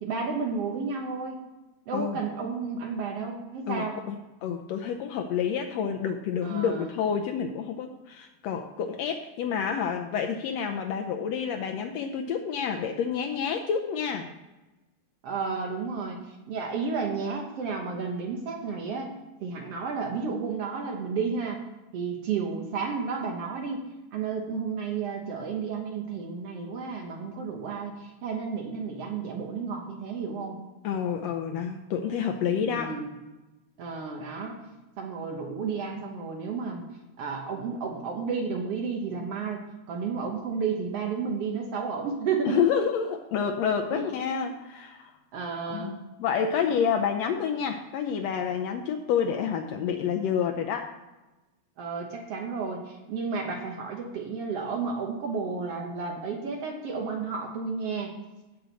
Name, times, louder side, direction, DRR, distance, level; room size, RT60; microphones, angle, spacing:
voice 1, 0.0-1.4 1.9-4.0 6.4-6.9 15.2-16.2 16.5-19.1 19.4-21.6 21.9-23.8 24.1-30.6 32.5-33.1 33.8-34.6 35.0-36.9 37.2-39.6 39.9-42.6 43.9-44.1 45.3-46.0 51.8-58.2, right 5 dB, 60° right, 2 dB, 1.7 m, -32 dB
voice 2, 3.7-14.3 30.8-33.0 42.5-45.1 45.7-50.9, left 7 dB, 90° left, 5 dB, 1.4 m, -29 dB
15.5 x 6.3 x 4.0 m, 1.1 s
omnidirectional pair, 3.7 m